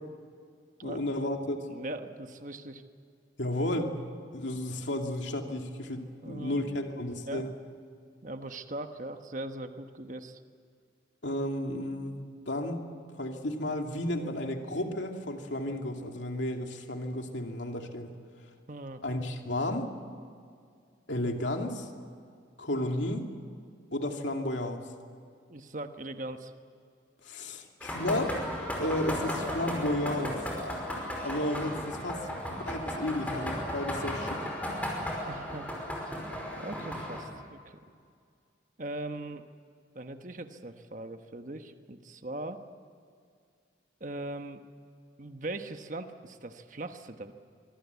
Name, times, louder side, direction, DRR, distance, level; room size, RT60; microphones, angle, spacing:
voice 1, 0.8-1.6 3.4-3.9 4.3-7.5 11.2-12.9 13.2-18.1 19.0-19.9 21.1-21.9 22.6-23.2 23.9-24.8 27.2-28.4 28.8-30.4 31.2-32.4 32.7-34.4, left 1 dB, 75° left, 3 dB, 2.6 m, -32 dB
voice 2, 1.7-2.8 6.2-6.6 7.3-7.5 8.2-10.4 18.7-19.0 25.5-26.5 34.3-34.5 35.2-35.7 36.5-37.8 38.8-39.4 39.9-42.6 44.0-44.6 45.2-47.3, right 2 dB, 45° right, 7 dB, 1.2 m, -40 dB
sound 1, 27.8-37.2, equal, 10° left, 5.2 m, -35 dB
24.5 x 24.0 x 8.3 m, 2.2 s
head